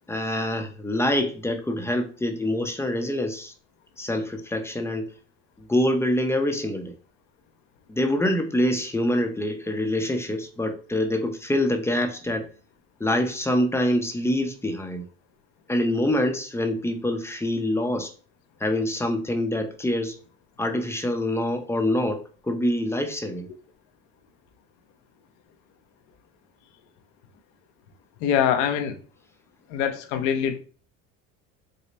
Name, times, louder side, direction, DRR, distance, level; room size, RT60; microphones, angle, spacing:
voice 1, 0.1-3.5 4.0-5.1 5.7-6.9 8.0-12.5 13.0-15.0 15.7-18.1 18.6-20.2 20.6-23.5, left 1 dB, 10° left, 5 dB, 0.6 m, -25 dB
voice 2, 28.2-29.0 29.7-30.6, left 8 dB, 85° left, 6 dB, 0.8 m, -23 dB
5.0 x 2.1 x 4.1 m, 0.39 s
cardioid pair, 120°, 29 cm